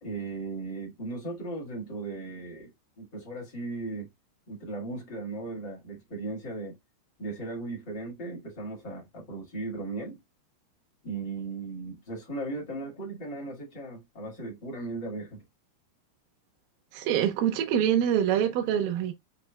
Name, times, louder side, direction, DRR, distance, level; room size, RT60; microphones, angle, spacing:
voice 1, 0.0-2.7 3.0-4.1 4.5-6.8 7.2-10.2 11.0-15.4, right 3 dB, 40° left, 1.8 m, -37 dB
voice 2, 16.9-19.1, right 9 dB, 70° right, 2.3 m, -25 dB
6.7 x 3.0 x 2.3 m
omnidirectional pair, 5.2 m